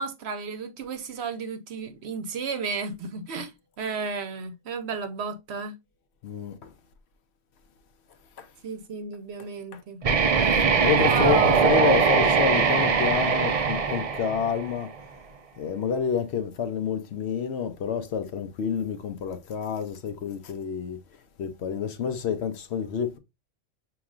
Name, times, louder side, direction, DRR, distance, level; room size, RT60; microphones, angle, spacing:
voice 1, 0.0-3.5 3.8-5.8 8.6-10.0 11.0-11.9, right 5 dB, 65° right, 1.0 m, -33 dB
voice 2, 6.2-6.7 8.4-8.5 9.7-9.8 10.5-14.9 15.6-21.0 21.4-23.2, left 7 dB, 65° left, 0.9 m, -28 dB
sound 1, 10.0-14.9, right 5 dB, 50° right, 0.4 m, -22 dB
6.1 x 3.0 x 2.3 m
omnidirectional pair, 1.3 m